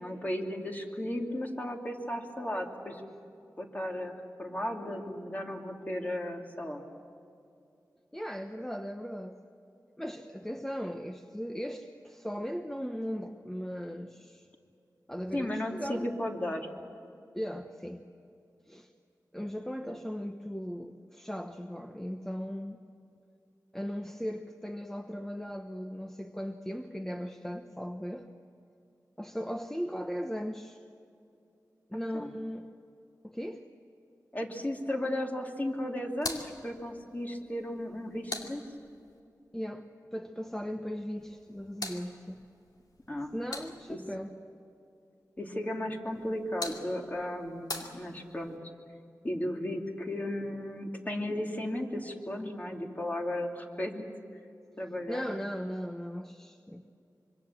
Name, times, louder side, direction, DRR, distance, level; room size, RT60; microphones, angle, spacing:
voice 1, 0.0-3.0 3.6-4.1 4.4-6.8 15.3-16.7 19.8-20.0 32.1-32.3 34.3-38.6 43.1-43.3 43.9-44.0 45.4-48.6 49.2-54.1 54.8-55.3, left 1 dB, 25° left, 1 dB, 2.9 m, -35 dB
voice 2, 8.1-9.4 10.0-14.5 15.1-16.1 17.3-18.0 18.7-18.9 19.3-22.8 23.7-28.3 29.2-30.8 31.9-32.7 33.2-33.7 39.5-42.4 43.3-44.3 55.1-56.8, equal, 5° left, 5 dB, 1.0 m, -38 dB
sound 1, 36.1-39.2 41.2-44.1 46.1-48.6, left 2 dB, 75° left, 2.4 m, -43 dB
25.5 x 24.5 x 7.5 m, 2.6 s
wide cardioid pair, 85°, 7 cm